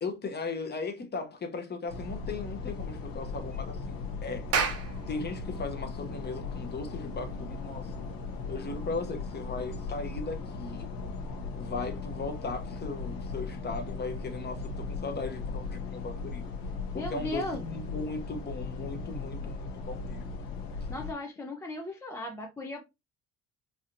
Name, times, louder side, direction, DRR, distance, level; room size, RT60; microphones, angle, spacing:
voice 1, 0.0-4.5 5.1-7.9 8.5-10.9 11.6-16.4 16.9-20.3, left 3 dB, 25° left, 0.8 m, -37 dB
sound 1, 1.9-21.1, left 4 dB, 65° left, 0.9 m, -38 dB
Clapping, 4.3-9.2, right 5 dB, 40° right, 0.7 m, -35 dB
voice 2, 16.9-17.6 20.9-22.8, left 1 dB, 10° left, 0.3 m, -36 dB
3.3 x 2.7 x 2.6 m
cardioid pair, 120°, 37 cm